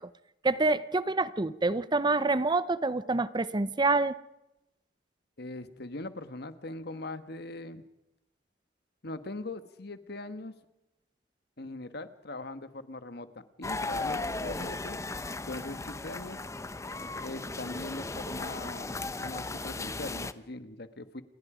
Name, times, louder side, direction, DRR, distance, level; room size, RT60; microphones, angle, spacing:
voice 1, 0.4-4.1, right 3 dB, 25° right, 15 dB, 0.7 m, -27 dB
voice 2, 5.4-7.8 9.0-10.5 11.6-15.0 15.5-16.4 17.2-21.2, left 2 dB, 65° left, 11 dB, 1.4 m, -41 dB
sound 1, 13.6-20.3, left 2 dB, 15° left, 0.8 m, -36 dB
28.0 x 21.5 x 5.0 m, 0.92 s
head